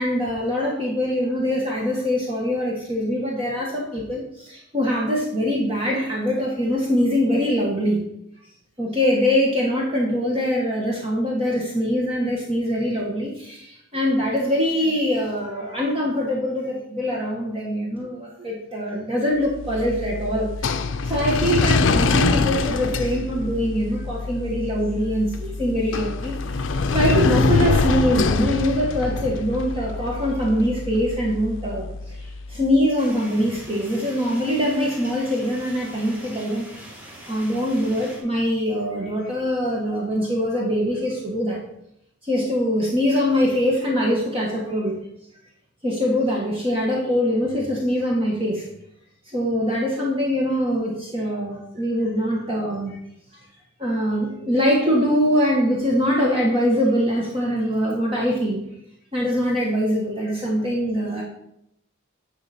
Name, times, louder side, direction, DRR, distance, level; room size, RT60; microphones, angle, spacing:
voice 1, 0.0-8.0 8.8-20.5 21.0-32.2 32.5-36.7 37.3-41.6 42.2-45.0 45.8-48.7 49.3-53.0 53.8-58.6 59.1-61.2, equal, 25° right, -3 dB, 1.4 m, -23 dB
sound 1, 19.5-32.6, left 4 dB, 65° left, 0.5 m, -24 dB
sound 2, 33.0-38.2, equal, 10° right, 1.8 m, -42 dB
9.8 x 5.6 x 4.3 m, 0.77 s
head